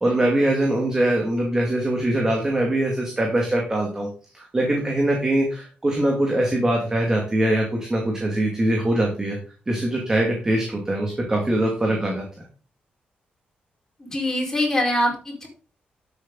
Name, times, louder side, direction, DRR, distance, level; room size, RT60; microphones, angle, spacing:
voice 1, 0.0-4.1 4.3-9.4 9.7-12.2, right 1 dB, 15° right, 0 dB, 2.4 m, -22 dB
voice 2, 14.0-15.5, left 1 dB, 15° left, -2 dB, 4.8 m, -23 dB
12.5 x 8.2 x 4.1 m, 0.37 s
wide cardioid pair, 165°, 3 cm